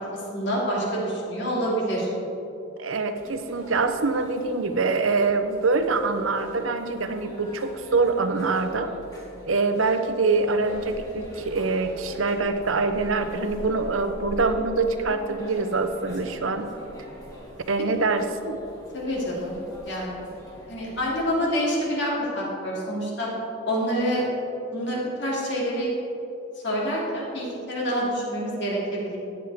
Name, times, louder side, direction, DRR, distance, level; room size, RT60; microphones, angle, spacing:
voice 1, 0.1-2.1 18.9-19.6 19.8-20.2 20.7-23.3 23.7-24.2 24.7-25.9 26.6-29.2, equal, 60° left, -4 dB, 2.8 m, -27 dB
voice 2, 2.8-9.0 9.5-16.7 17.7-18.6, right 3 dB, 85° right, 8 dB, 0.8 m, -24 dB
sound 1, 3.1-21.3, equal, 20° left, 2.2 m, -44 dB
14.0 x 9.3 x 3.6 m, 2.9 s
head